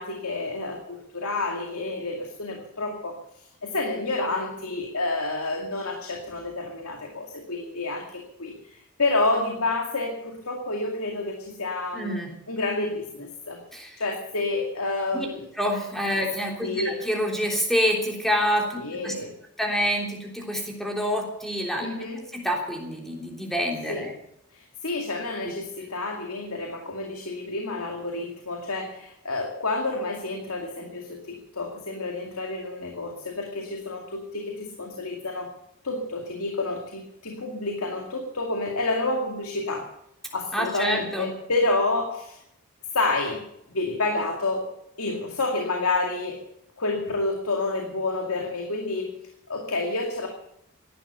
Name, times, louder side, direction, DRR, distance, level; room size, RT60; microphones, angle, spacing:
voice 1, 0.0-13.6 14.0-15.4 16.6-17.0 18.8-19.4 21.8-22.2 23.9-24.1 24.5-35.5 35.8-39.9 40.3-42.4 42.9-43.4 43.7-44.7 45.0-46.4 46.8-49.1 49.5-50.3, left 2 dB, 80° left, 2 dB, 2.3 m, -29 dB
voice 2, 11.9-12.3 13.7-14.0 15.1-15.3 15.6-19.1 19.6-21.9 22.3-24.1 40.5-41.3, equal, ahead, 0 dB, 3.5 m, -27 dB
17.0 x 12.0 x 6.9 m, 0.77 s
head